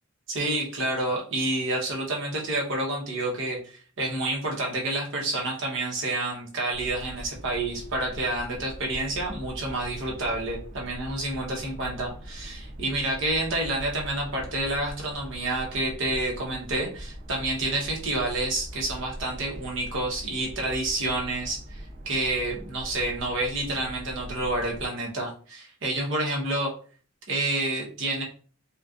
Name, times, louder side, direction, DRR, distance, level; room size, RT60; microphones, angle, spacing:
voice 1, 0.3-26.7 27.3-28.2, right 2 dB, 65° right, -1 dB, 1.1 m, -29 dB
sound 1, 6.7-24.9, equal, 40° right, 0.6 m, -42 dB
4.2 x 2.3 x 2.5 m, 0.41 s
head